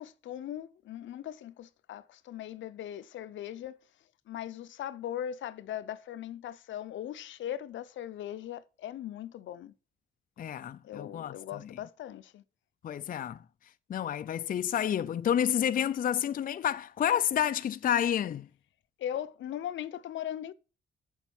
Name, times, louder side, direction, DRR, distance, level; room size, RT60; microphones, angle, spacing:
voice 1, 0.0-3.8 4.3-9.7 10.8-12.4 19.0-20.5, left 11 dB, 70° left, 0.8 m, -39 dB
voice 2, 10.4-11.4 12.8-13.4 13.9-18.5, left 9 dB, 45° left, 0.5 m, -29 dB
7.9 x 7.2 x 7.1 m
cardioid pair, 90°, 20 cm